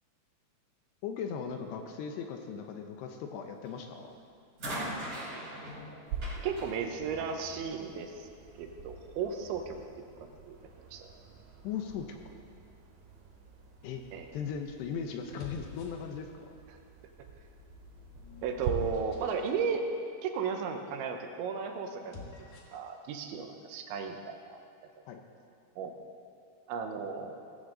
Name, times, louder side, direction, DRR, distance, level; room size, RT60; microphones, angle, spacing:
voice 1, 1.0-4.2 11.6-12.2 13.8-14.0 14.3-16.5 25.1-25.2, left 7 dB, 75° left, 4 dB, 2.9 m, -38 dB
sound 1, 3.7-4.0 4.6-7.9 8.9-9.0, right 1 dB, 35° right, 5.9 m, -41 dB
sound 2, 6.1-18.7, right 6 dB, 65° right, 3.3 m, -46 dB
voice 2, 6.4-8.3 8.6-9.8 10.2-10.6 10.9-11.1 14.1-14.3 18.4-19.9 20.2-22.2 22.7-24.6 25.8-25.9 26.7-27.4, right 6 dB, 90° right, 4 dB, 3.4 m, -35 dB
sound 3, 13.9-14.3 15.2-16.5 17.3-19.6 21.9-22.9, left 3 dB, 55° left, 2.4 m, -50 dB
18.0 x 15.0 x 4.0 m, 2.3 s
omnidirectional pair, 5.3 m